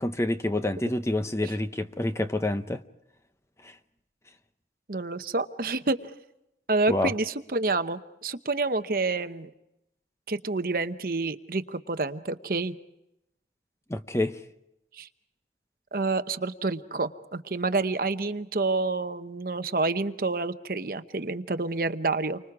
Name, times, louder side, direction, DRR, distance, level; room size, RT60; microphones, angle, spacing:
voice 1, 0.0-2.8 3.6-3.7 6.9-7.1 13.9-14.4, left 1 dB, 15° left, 0.7 m, -28 dB
voice 2, 4.9-6.1 6.7-9.5 10.3-12.7 15.0-15.1 15.9-22.4, right 3 dB, 55° right, 0.9 m, -28 dB
30.0 x 25.0 x 4.8 m
head